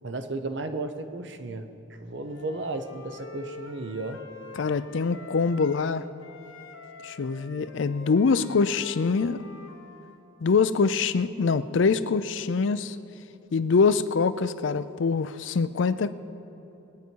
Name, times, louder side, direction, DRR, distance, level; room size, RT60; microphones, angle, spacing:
voice 1, 0.0-4.2, right 2 dB, 60° right, 9 dB, 0.8 m, -34 dB
Wind instrument woodwind instrument, 2.2-5.9 6.2-10.2, left 3 dB, 90° left, 1.1 m, -46 dB
voice 2, 4.6-6.0 7.0-9.4 10.4-13.0 13.5-16.1, left 5 dB, 70° left, 14 dB, 0.5 m, -24 dB
21.0 x 9.5 x 4.6 m, 2.9 s
head